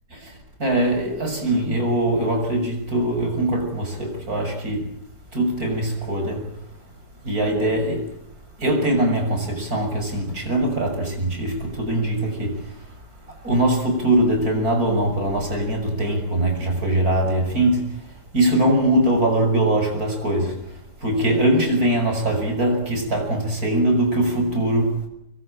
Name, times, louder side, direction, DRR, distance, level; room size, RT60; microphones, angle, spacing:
voice 1, 0.6-4.9 5.3-6.5 7.2-8.1 8.6-12.7 13.4-18.0 18.3-20.7 21.0-25.0, right 1 dB, 60° right, 7.1 m, -22 dB
25.5 x 22.0 x 8.9 m
omnidirectional pair, 1.8 m